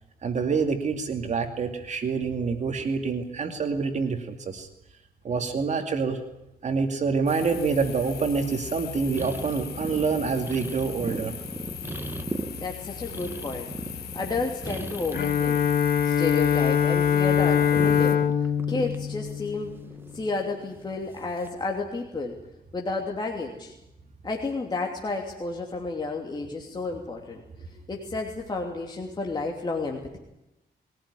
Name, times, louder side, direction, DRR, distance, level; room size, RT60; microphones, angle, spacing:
voice 1, 0.2-4.7 5.2-6.2 6.6-11.3, right 5 dB, 45° right, 5 dB, 2.5 m, -27 dB
sound 1, 7.3-18.2, left 10 dB, 90° left, 1.7 m, -39 dB
sound 2, 9.0-15.4 15.7-16.7 17.0-20.6 21.3-21.7, right 2 dB, 15° right, 1.3 m, -38 dB
voice 2, 12.6-15.6 16.0-18.2 18.7-19.8 20.1-22.3 22.7-23.7 24.2-27.4 27.9-30.2, left 3 dB, 25° left, 0 dB, 2.9 m, -31 dB
Bowed string instrument, 15.1-20.0, left 8 dB, 65° left, 1.8 m, -23 dB
22.0 x 18.0 x 9.9 m, 0.91 s
wide cardioid pair, 145°, 16 cm